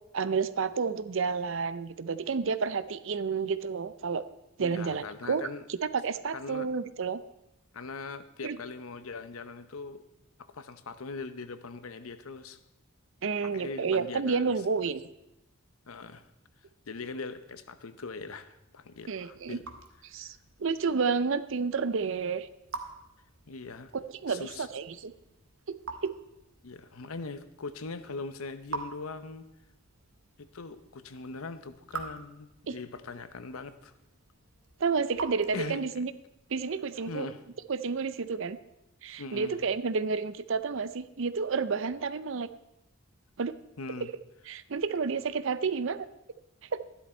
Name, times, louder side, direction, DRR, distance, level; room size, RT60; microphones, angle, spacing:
voice 1, 0.1-4.2 4.6-5.4 5.7-7.2 8.4-8.6 13.2-15.0 19.1-19.6 20.1-22.5 23.9-25.1 25.7-25.8 26.0-26.1 32.7-32.8 34.8-36.1 36.5-37.3 37.7-38.6 39.0-42.5 43.4-43.6 44.5-46.1 46.7-46.8, right 5 dB, 65° right, 14 dB, 0.6 m, -30 dB
voice 2, 4.6-5.7 6.3-6.7 7.7-10.0 10.5-12.6 13.4-14.6 15.9-16.3 16.9-19.7 23.5-23.9 24.3-24.7 26.6-29.5 30.4-33.9 35.5-35.8 37.0-37.4 39.2-39.6 43.8-44.1, left 4 dB, 85° left, 12 dB, 0.8 m, -41 dB
Raindrop / Drip, 18.9-36.1, right 4 dB, 85° right, 1.4 m, -47 dB
13.0 x 11.5 x 4.4 m, 0.89 s
head